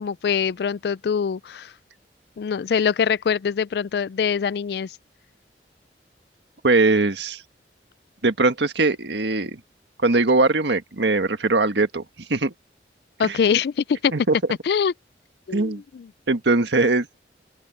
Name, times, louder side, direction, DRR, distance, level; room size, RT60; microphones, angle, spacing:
voice 1, 0.0-1.7 2.4-5.0 13.2-14.1 14.6-14.9 15.5-16.1, left 7 dB, 65° left, 0.3 m, -23 dB
voice 2, 6.6-7.4 8.2-9.6 10.0-12.0 12.3-12.5 13.3-13.4 14.1-14.3 15.5-15.8 16.3-17.1, right 3 dB, 80° right, 1.6 m, -20 dB
open air
head